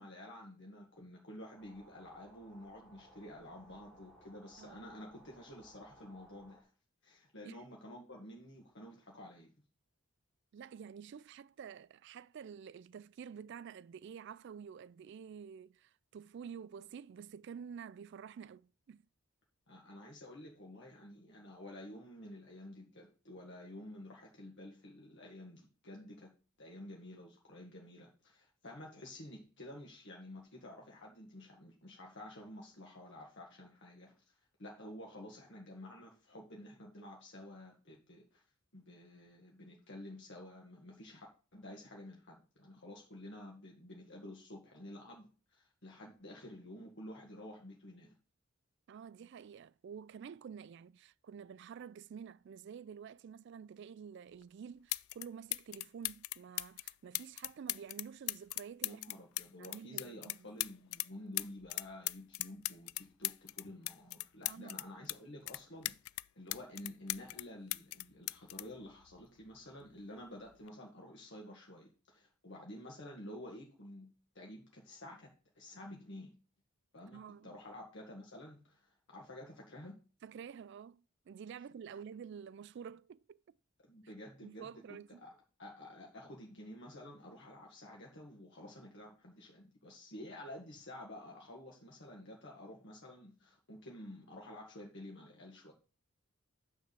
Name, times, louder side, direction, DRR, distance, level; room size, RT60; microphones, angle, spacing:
voice 1, 0.0-6.7 7.0-9.5 19.7-26.3 26.6-34.3 34.6-38.4 38.7-41.3 41.5-48.1 58.8-66.0 66.3-74.1 74.3-76.3 76.9-80.0 83.8-95.7, left 1 dB, 55° left, 1.6 m, -51 dB
sound 1, 1.6-6.6, right 1 dB, ahead, 2.7 m, -61 dB
voice 2, 10.5-19.0 48.9-59.0 59.6-60.4 64.5-64.8 77.0-77.5 80.2-83.4 84.4-85.2, right 7 dB, 55° right, 0.3 m, -49 dB
sound 2, 54.4-54.5 54.9-55.3 55.5-61.1 61.4-65.2 65.5-67.4 67.7-69.5 70.5-70.7, left 19 dB, 80° left, 0.3 m, -39 dB
9.3 x 3.6 x 6.6 m
head